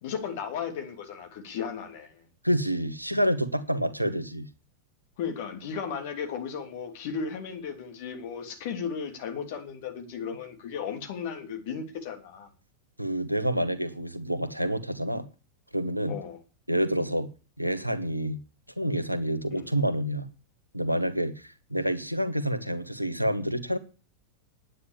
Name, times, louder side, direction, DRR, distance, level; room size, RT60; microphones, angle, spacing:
voice 1, 0.0-2.2 5.2-12.5 16.1-16.4 19.5-19.7, left 7 dB, 50° left, 3.1 m, -35 dB
voice 2, 2.4-4.5 13.0-15.3 15.7-16.2 16.7-17.3 17.6-18.4 18.8-20.3 20.7-23.8, equal, 90° right, 1.3 m, -28 dB
9.9 x 9.3 x 7.1 m
figure-of-eight pair, 90°, 0 cm